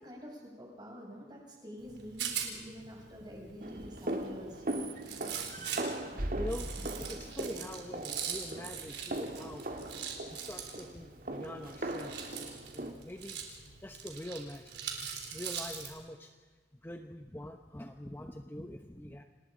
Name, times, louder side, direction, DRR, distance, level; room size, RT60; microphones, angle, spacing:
voice 1, 0.0-4.6, equal, 25° right, 0 dB, 6.4 m, -47 dB
Rattle, 1.8-15.9, right 7 dB, 75° right, 4.0 m, -42 dB
sound 1, 3.6-12.9, right 1 dB, 50° right, 1.8 m, -39 dB
voice 2, 5.3-9.8 10.3-12.3 12.7-13.4 13.8-16.3 16.8-19.2, left 1 dB, 10° left, 5 dB, 0.9 m, -45 dB
28.5 x 20.0 x 5.1 m, 1.4 s
head